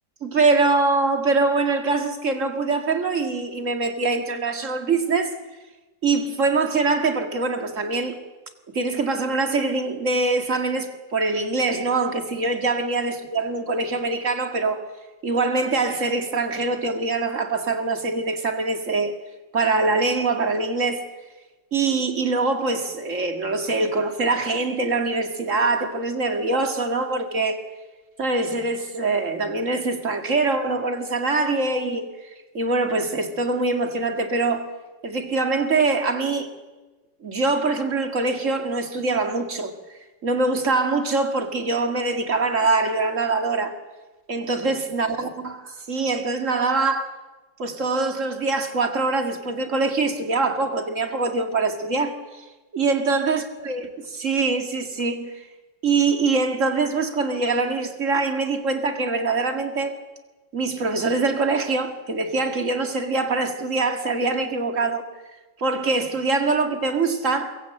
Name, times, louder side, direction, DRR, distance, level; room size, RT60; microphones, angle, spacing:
voice 1, 0.2-5.3 6.0-8.2 8.7-14.8 15.2-19.1 19.5-21.1 21.7-27.6 28.2-34.7 35.0-36.5 37.2-39.7 40.2-43.7 44.3-47.2 47.6-52.2 52.7-55.3 55.8-59.9 60.5-65.0 65.6-67.6, right 3 dB, 45° right, 2.2 m, -23 dB
23.0 x 23.0 x 7.7 m
omnidirectional pair, 1.9 m